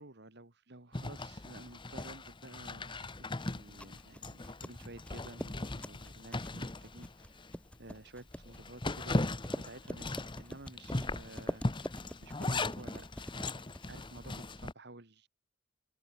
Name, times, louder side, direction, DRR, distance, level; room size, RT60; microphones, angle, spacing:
voice 1, 0.0-7.4 7.8-11.6 12.2-13.5 13.9-15.3, right 2 dB, 55° right, 2.3 m, -52 dB
Zipper (clothing), 0.9-7.6 8.0-8.1 8.4-14.7, left 2 dB, 25° left, 1.0 m, -38 dB
sound 1, 3.6-14.5, equal, 5° left, 1.8 m, -46 dB
open air
head